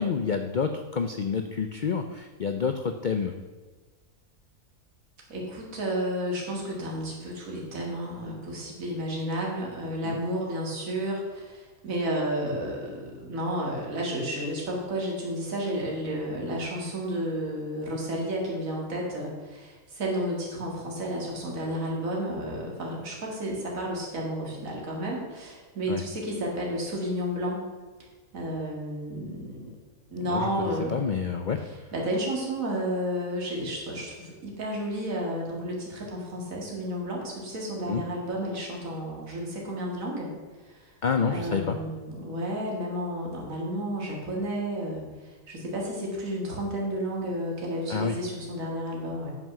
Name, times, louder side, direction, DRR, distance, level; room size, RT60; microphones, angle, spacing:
voice 1, 0.0-3.3 10.0-10.2 25.9-26.0 30.2-31.6 37.9-38.0 41.0-41.8 47.9-48.2, left 6 dB, 70° left, 6 dB, 0.4 m, -28 dB
voice 2, 5.3-27.6 28.3-29.7 30.1-31.0 31.9-40.3 40.6-40.9 41.2-49.3, equal, 65° right, -2 dB, 2.5 m, -32 dB
9.2 x 6.0 x 6.0 m, 1.3 s
omnidirectional pair, 1.5 m